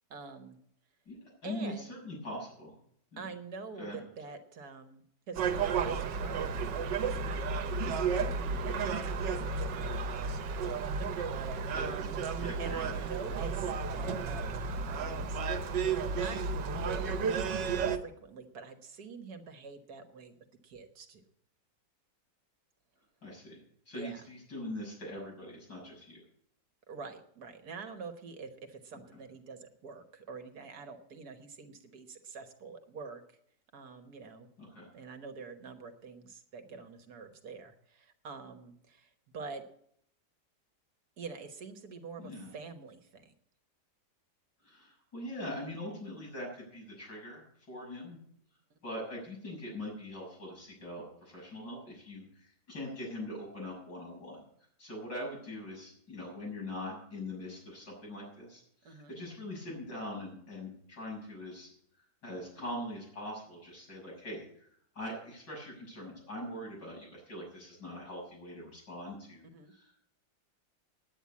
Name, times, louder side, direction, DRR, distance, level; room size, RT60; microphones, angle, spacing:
voice 1, 0.1-0.6 1.4-1.9 3.2-6.9 7.2-12.2 12.6-15.4 16.1-20.3 20.6-21.2 23.9-24.3 26.9-33.2 33.7-34.5 34.9-39.6 41.2-43.3 58.8-59.1 69.5-69.7, right 4 dB, 65° right, 7 dB, 1.7 m, -46 dB
voice 2, 1.1-2.7 3.1-3.3 3.8-4.0 9.2-9.4 11.7-11.9 12.4-13.0 23.2-23.6 23.9-26.2 34.6-34.9 42.2-42.5 44.6-48.2 48.8-54.4 54.8-61.7 62.0-64.7 65.0-70.0, left 1 dB, 85° left, -3 dB, 7.3 m, -42 dB
Gull seagull, 5.3-18.0, right 5 dB, 80° right, 1.5 m, -33 dB
9.9 x 9.1 x 8.4 m, 0.69 s
omnidirectional pair, 1.9 m